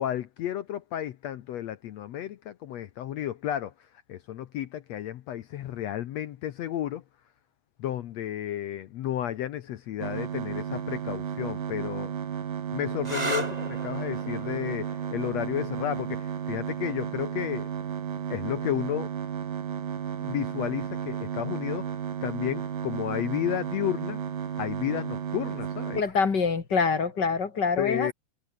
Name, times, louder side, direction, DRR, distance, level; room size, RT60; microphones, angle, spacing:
voice 1, 0.0-3.7 4.1-7.0 7.8-12.1 12.7-17.7 18.3-19.1 20.2-24.2 24.6-26.0 27.8-28.1, left 11 dB, 70° left, 1.7 m, -32 dB
sound 1, 10.0-26.0, right 8 dB, 70° right, 4.2 m, -33 dB
sound 2, 13.0-20.4 21.4-21.9 25.4-25.8, right 2 dB, 15° right, 2.0 m, -40 dB
voice 2, 25.9-28.1, left 5 dB, 35° left, 2.6 m, -25 dB
omnidirectional pair, 3.9 m